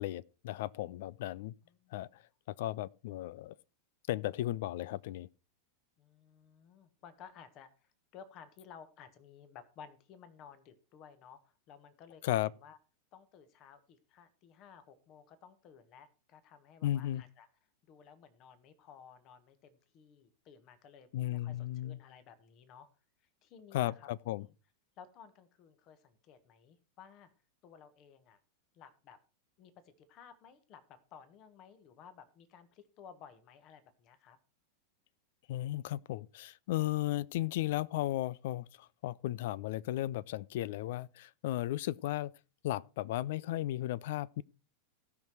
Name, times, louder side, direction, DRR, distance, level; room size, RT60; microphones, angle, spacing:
voice 1, 0.0-1.5 1.9-2.1 2.6-3.6 4.1-5.3 12.2-12.5 16.8-17.2 21.1-22.0 23.7-24.5 35.5-42.3 42.6-44.4, left 14 dB, 55° left, 0.4 m, -35 dB
voice 2, 1.6-2.2 6.0-12.8 13.1-17.5 17.9-22.9 23.2-24.1 24.4-24.5 25.0-27.3 27.6-28.4 28.7-29.2 29.6-34.4, left 7 dB, 35° left, 1.5 m, -56 dB
16.5 x 6.0 x 4.6 m
figure-of-eight pair, 90°, 0 cm